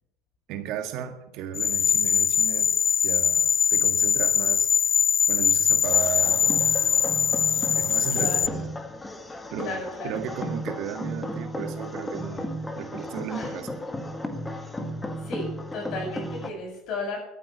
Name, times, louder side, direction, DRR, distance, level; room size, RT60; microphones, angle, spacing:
voice 1, 0.5-2.7 3.0-4.7 5.3-6.8 7.7-8.7 9.5-13.8 14.8-14.9, right 9 dB, 60° right, 1.9 m, -35 dB
sound 1, 1.5-8.5, left 7 dB, 35° left, 0.5 m, -22 dB
sound 2, 5.8-16.5, left 1 dB, 10° left, 1.8 m, -34 dB
voice 2, 8.1-8.6 9.6-10.3 13.3-13.5 15.2-17.2, left 3 dB, 55° left, 7.5 m, -34 dB
13.5 x 9.6 x 8.4 m
supercardioid pair, 110°, 0 cm